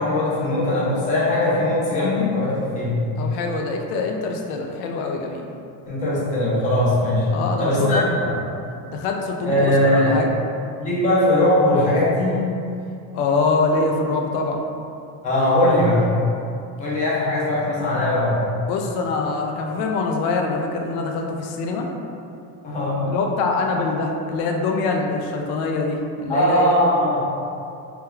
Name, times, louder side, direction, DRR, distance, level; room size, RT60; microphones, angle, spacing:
voice 1, 0.0-3.0 5.9-7.3 7.6-8.3 9.4-10.2 10.8-12.4 15.2-16.1 16.8-18.4 22.6-23.0 26.3-27.2, left 1 dB, 15° left, -8 dB, 0.5 m, -20 dB
voice 2, 3.2-5.4 7.3-8.1 8.9-10.3 13.1-14.6 18.7-21.9 23.1-26.7, left 3 dB, 80° left, 2 dB, 0.5 m, -24 dB
2.9 x 2.3 x 3.5 m, 2.6 s
cardioid pair, 170°, 45 cm